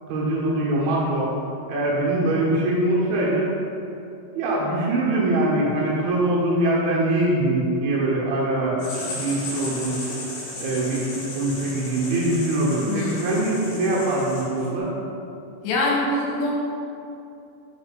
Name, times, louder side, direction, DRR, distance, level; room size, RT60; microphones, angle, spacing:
voice 1, 0.1-1.3 1.7-3.5 4.4-10.0 10.6-14.9, right 1 dB, 85° right, -5 dB, 3.5 m, -23 dB
Writing, 8.8-14.8, left 2 dB, 65° left, 2.2 m, -35 dB
voice 2, 12.9-13.3 15.6-16.5, left 2 dB, 80° left, -4 dB, 2.9 m, -24 dB
7.1 x 5.5 x 2.5 m, 2.7 s
omnidirectional pair, 5.2 m